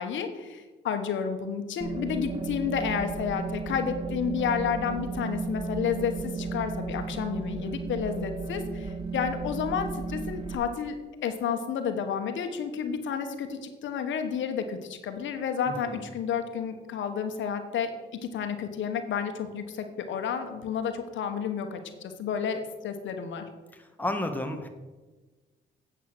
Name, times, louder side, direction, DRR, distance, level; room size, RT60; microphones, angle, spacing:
voice 1, 0.0-11.0 11.2-17.9 18.2-23.4, left 7 dB, 70° left, 7 dB, 1.2 m, -31 dB
sound 1, 1.8-10.6, right 4 dB, 25° right, 1.6 m, -34 dB
voice 2, 15.7-16.0 23.8-24.7, left 1 dB, 10° left, 4 dB, 1.4 m, -32 dB
8.5 x 8.0 x 6.1 m, 1.3 s
cardioid pair, 90°, 20 cm